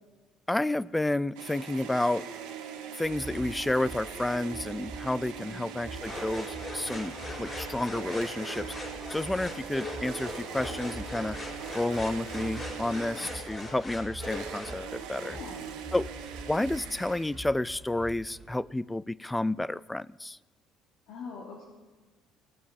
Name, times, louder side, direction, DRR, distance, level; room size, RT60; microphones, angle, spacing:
voice 1, 0.5-2.3 2.9-8.7 9.1-11.4 11.7-15.4 15.9-16.1 16.5-20.4, left 1 dB, 10° left, 21 dB, 0.4 m, -30 dB
sound 1, 1.3-17.6, right 7 dB, 85° right, 1.9 m, -42 dB
sound 2, 3.0-18.5, right 1 dB, 10° right, 4.1 m, -46 dB
sound 3, 6.0-14.8, left 2 dB, 35° left, 5.3 m, -40 dB
voice 2, 15.3-15.6 21.1-21.6, left 4 dB, 75° left, -3 dB, 3.0 m, -43 dB
19.0 x 7.8 x 8.3 m, 1.3 s
supercardioid pair, 85°, 0 cm